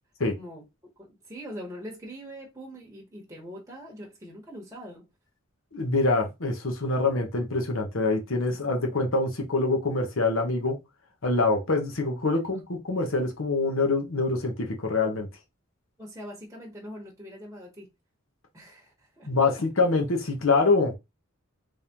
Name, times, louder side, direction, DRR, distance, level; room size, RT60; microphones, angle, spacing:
voice 1, 0.3-0.6 1.0-5.1 16.0-17.9 18.5-19.5, equal, 15° right, 1.1 m, -42 dB
voice 2, 5.7-10.8 11.2-15.3 19.3-21.0, left 3 dB, 75° left, 1.1 m, -25 dB
3.5 x 3.4 x 2.9 m
head